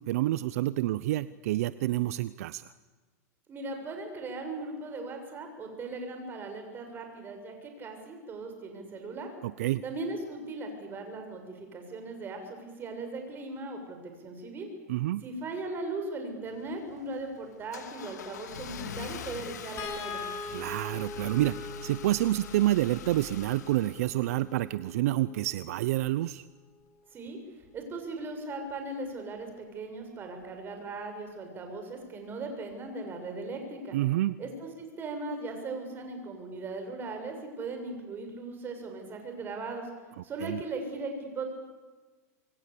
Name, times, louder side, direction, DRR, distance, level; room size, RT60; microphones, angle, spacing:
voice 1, 0.0-2.7 9.4-9.8 14.9-15.2 20.5-26.4 33.9-34.4 40.4-40.6, right 15 dB, 65° right, 16 dB, 0.8 m, -28 dB
voice 2, 3.5-9.3 9.8-14.7 15.2-20.2 27.1-27.4 27.7-34.0 34.4-39.9 40.2-41.4, right 3 dB, 25° right, 5 dB, 6.9 m, -38 dB
Car / Engine starting, 16.5-24.6, left 7 dB, 85° left, 2.6 m, -43 dB
sound 1, 19.8-26.1 27.6-27.8 28.2-28.3, left 3 dB, 30° left, 7.7 m, -43 dB
27.0 x 22.5 x 8.6 m, 1.4 s
hypercardioid pair, 135°, 9 cm